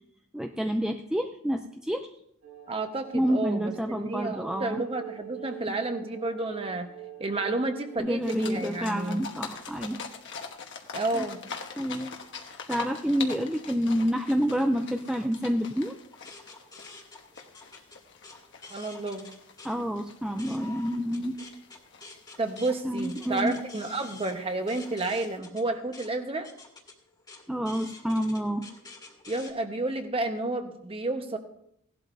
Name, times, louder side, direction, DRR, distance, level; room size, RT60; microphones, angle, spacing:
voice 1, 0.3-2.1 3.1-4.8 5.7-5.8 8.0-10.0 11.1-11.3 11.8-12.1 12.7-15.9 19.6-21.4 22.8-23.6 27.5-28.7, equal, 5° right, 4 dB, 0.4 m, -28 dB
sound 1, 2.4-8.0, right 13 dB, 75° right, 5.9 m, -43 dB
voice 2, 2.7-6.9 7.2-9.2 10.9-11.4 18.7-19.3 22.4-26.5 29.3-31.4, right 2 dB, 25° right, 6 dB, 1.1 m, -31 dB
sound 2, 8.2-25.4, left 5 dB, 55° left, 1.2 m, -44 dB
sound 3, 16.1-19.8 20.1-29.5, left 3 dB, 20° left, 1.9 m, -48 dB
17.0 x 11.5 x 2.7 m, 0.73 s
head